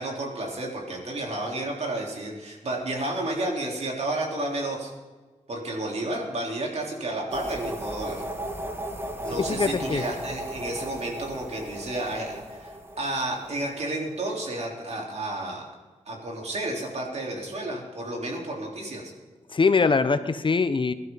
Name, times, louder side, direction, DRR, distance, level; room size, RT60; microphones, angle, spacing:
voice 1, 0.0-4.9 5.5-8.2 9.2-15.7 16.1-19.1, right 1 dB, 60° right, -1 dB, 3.9 m, -31 dB
sound 1, 7.3-14.2, right 1 dB, 20° right, 1.7 m, -36 dB
voice 2, 9.5-10.0 19.5-20.9, left 4 dB, 45° left, 12 dB, 0.7 m, -22 dB
22.5 x 12.0 x 4.0 m, 1.3 s
wide cardioid pair, 90°, 12 cm